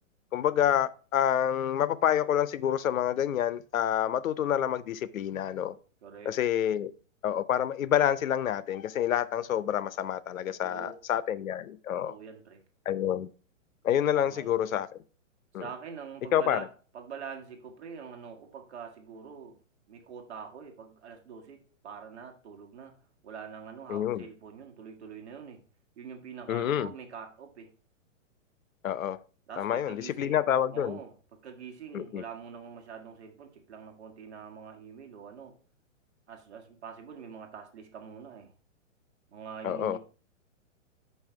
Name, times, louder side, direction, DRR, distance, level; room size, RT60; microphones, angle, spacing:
voice 1, 0.3-5.7 6.3-6.9 7.2-12.2 12.9-13.3 13.8-14.9 15.5-15.7 16.3-16.6 23.9-24.3 26.5-26.9 28.8-29.2 29.6-31.0 31.9-32.2 39.6-40.0, left 10 dB, 85° left, 0.7 m, -28 dB
voice 2, 6.0-6.3 10.5-11.0 12.1-12.6 14.2-14.5 15.6-16.7 16.9-19.6 19.9-22.9 23.2-25.6 26.0-27.7 29.5-30.4 30.7-35.5 36.3-38.5 39.3-40.0, right 6 dB, 55° right, 1.9 m, -44 dB
5.7 x 5.6 x 4.5 m
hypercardioid pair, 170°, 39 cm